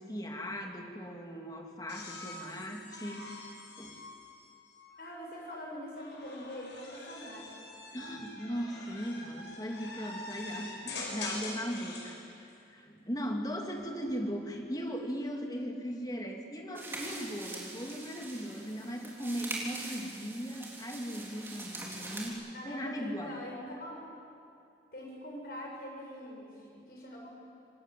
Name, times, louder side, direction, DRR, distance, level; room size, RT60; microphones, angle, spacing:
voice 1, 0.0-3.3 3.8-4.0 7.9-23.4, equal, 20° left, 2 dB, 2.6 m, -38 dB
sound 1, 1.9-5.2 6.0-12.2 13.6-14.2, left 2 dB, 75° left, 5.7 m, -44 dB
voice 2, 5.0-7.6 22.5-24.0 24.9-27.3, equal, 55° left, -2 dB, 7.1 m, -43 dB
sound 2, 16.7-22.3, right 2 dB, 15° right, 3.7 m, -43 dB
27.0 x 19.5 x 9.2 m, 2.6 s
head